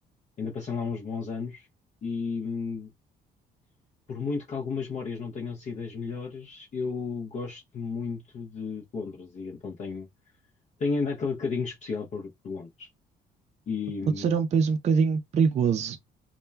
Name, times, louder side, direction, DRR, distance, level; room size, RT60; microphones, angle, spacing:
voice 1, 0.4-1.7 2.0-2.9 4.1-10.1 10.8-12.9 13.7-14.4, left 4 dB, 45° left, 0.5 m, -33 dB
voice 2, 14.2-16.0, right 6 dB, 40° right, 0.4 m, -23 dB
2.2 x 2.2 x 3.2 m
cardioid pair, 100°, 17 cm